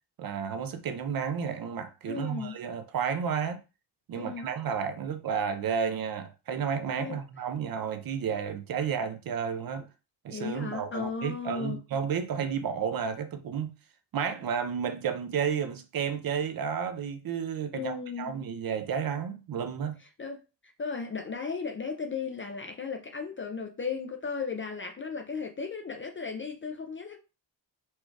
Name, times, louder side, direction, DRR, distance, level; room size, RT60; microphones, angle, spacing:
voice 1, 0.2-3.6 4.1-9.9 10.2-13.7 14.1-20.0, right 7 dB, 50° right, 0.5 m, -32 dB
voice 2, 2.0-2.6 4.1-4.5 7.0-7.2 10.3-11.8 17.7-18.3 20.2-20.4 20.8-27.2, left 5 dB, 30° left, 0.3 m, -35 dB
4.4 x 2.3 x 4.5 m
wide cardioid pair, 180°, 46 cm